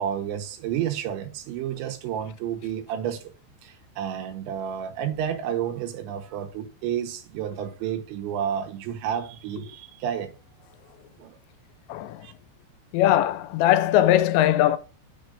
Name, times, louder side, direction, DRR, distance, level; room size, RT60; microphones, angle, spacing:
voice 1, 0.0-3.3 3.6-10.3 11.2-11.4 12.2-12.3, right 9 dB, 85° right, 3.3 m, -31 dB
voice 2, 11.9-12.3 12.9-14.8, left 12 dB, 85° left, 2.8 m, -20 dB
6.5 x 5.5 x 5.1 m
omnidirectional pair, 5.1 m